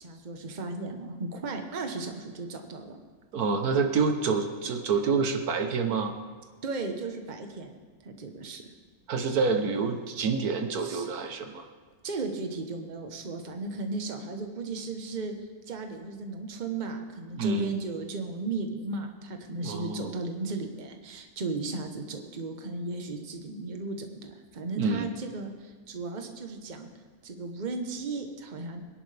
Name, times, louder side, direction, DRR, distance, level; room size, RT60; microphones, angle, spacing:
voice 1, 0.0-3.0 6.6-7.7 8.0-8.6 10.8-11.1 12.0-15.3 15.7-26.9 27.2-28.8, right 3 dB, 35° right, 5 dB, 1.1 m, -35 dB
voice 2, 3.3-6.1 9.1-11.6 17.4-17.7 19.6-20.1 24.8-25.1, right 4 dB, 75° right, 6 dB, 1.5 m, -27 dB
23.0 x 11.0 x 3.4 m, 1.5 s
omnidirectional pair, 1.6 m